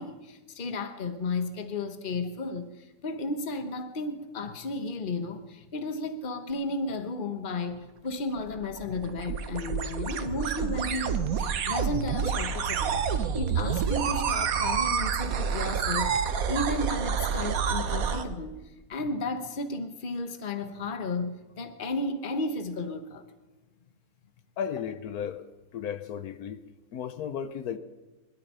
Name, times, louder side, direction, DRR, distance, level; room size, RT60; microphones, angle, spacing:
voice 1, 0.0-11.2 11.7-13.0 13.3-16.1 16.5-18.5 18.9-23.2, left 2 dB, 35° left, 9 dB, 1.2 m, -33 dB
sound 1, 8.4-18.2, right 7 dB, 70° right, 1.3 m, -28 dB
voice 2, 24.6-25.5 25.7-26.6 26.9-27.8, left 8 dB, 80° left, 11 dB, 1.3 m, -34 dB
20.5 x 12.5 x 5.6 m, 1.2 s
omnidirectional pair, 1.6 m